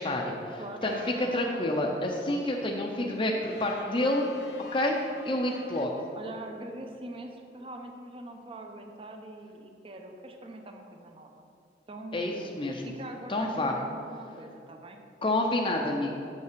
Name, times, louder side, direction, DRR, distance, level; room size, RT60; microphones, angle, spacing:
voice 1, 0.0-4.3 4.7-5.9 12.1-12.9 13.3-13.7 15.2-16.1, left 1 dB, 30° left, 0 dB, 0.5 m, -29 dB
voice 2, 0.6-1.3 6.2-11.5 11.9-12.5 12.8-15.0, right 1 dB, 30° right, 4 dB, 0.6 m, -43 dB
sound 1, 0.8-3.5, equal, 75° right, 2.2 m, -47 dB
sound 2, 3.4-6.7, left 3 dB, 65° left, 0.8 m, -48 dB
6.7 x 5.5 x 6.6 m, 2.6 s
head